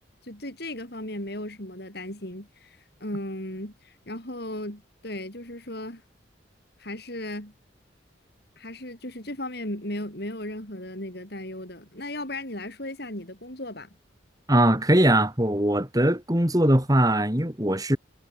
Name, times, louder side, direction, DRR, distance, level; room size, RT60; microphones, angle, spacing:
voice 1, 0.2-6.0 6.8-7.5 8.6-13.9, left 1 dB, 55° left, 7.2 m, -36 dB
voice 2, 14.5-18.0, right 1 dB, 20° right, 4.3 m, -21 dB
head